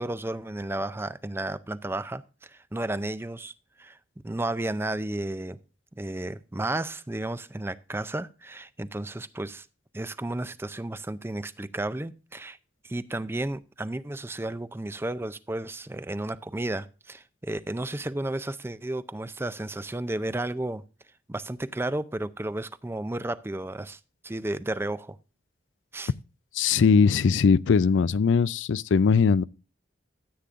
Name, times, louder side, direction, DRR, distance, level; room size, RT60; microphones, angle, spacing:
voice 1, 0.0-4.0 4.2-5.6 6.0-9.7 9.9-12.6 12.8-20.8 21.3-25.2 25.9-26.1, right 1 dB, 10° right, 0.4 m, -33 dB
voice 2, 26.5-29.4, left 5 dB, 80° left, 0.4 m, -20 dB
13.5 x 8.4 x 2.4 m
head